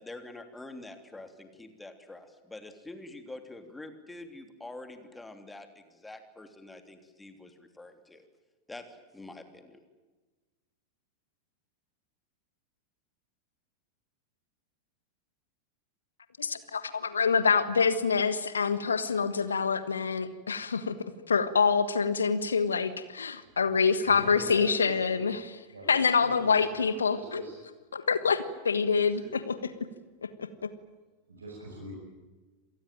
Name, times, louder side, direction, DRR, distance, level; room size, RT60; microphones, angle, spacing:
voice 1, 0.0-8.2 8.7-9.8, left 2 dB, 10° left, 8 dB, 3.1 m, -46 dB
voice 2, 16.4-25.4 25.9-27.4 27.9-29.5 30.2-30.7, left 5 dB, 70° left, 14 dB, 1.4 m, -26 dB
voice 3, 24.0-25.2 25.7-27.5 29.0-29.3 31.3-31.9, right 1 dB, 75° right, -3 dB, 7.4 m, -44 dB
27.0 x 19.5 x 9.1 m, 1.3 s
figure-of-eight pair, 90°, 0 cm